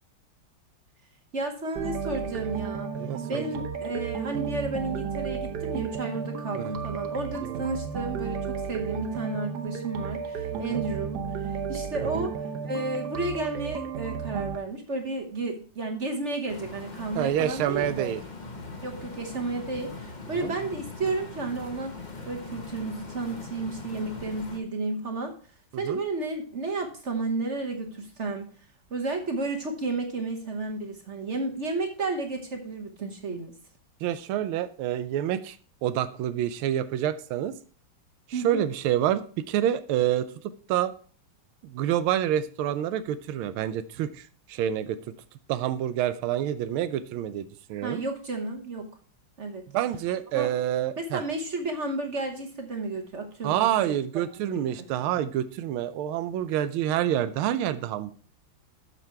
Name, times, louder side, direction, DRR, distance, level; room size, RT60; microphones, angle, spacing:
voice 1, 1.3-3.0 3.3-18.1 18.8-22.0 22.2-25.3 25.8-28.5 28.9-33.6 38.3-38.7 47.8-48.9 49.4-49.6 50.3-50.5 51.0-54.0 54.4-54.8, right 3 dB, 45° right, 3 dB, 1.1 m, -32 dB
sound 1, 1.8-14.6, right 6 dB, 60° right, 1.4 m, -33 dB
voice 2, 3.0-3.5 6.5-6.8 7.4-7.6 10.5-10.8 17.1-18.2 20.3-20.5 25.8-26.0 34.0-35.6 35.8-37.5 38.3-39.2 39.5-40.3 40.7-40.9 41.6-45.0 45.5-48.0 49.7-51.2 53.4-58.1, right 11 dB, 80° right, 12 dB, 1.5 m, -27 dB
sound 2, 16.5-24.6, left 3 dB, 30° left, 0.8 m, -41 dB
8.5 x 6.6 x 4.5 m, 0.41 s
omnidirectional pair, 2.3 m